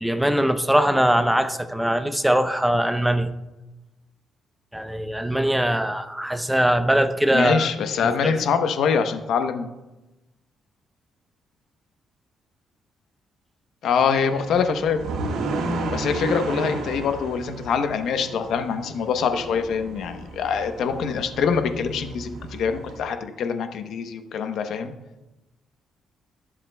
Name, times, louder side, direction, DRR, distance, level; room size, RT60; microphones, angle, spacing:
voice 1, 0.0-3.3 4.7-7.7 8.0-8.4, right 1 dB, 5° right, 0.7 m, -21 dB
voice 2, 7.3-9.7 13.8-15.0 15.9-24.9, left 6 dB, 70° left, 0.9 m, -24 dB
sound 1, 14.0-23.0, right 3 dB, 90° right, 1.6 m, -33 dB
19.5 x 7.4 x 2.3 m
cardioid pair, 90°, 0 cm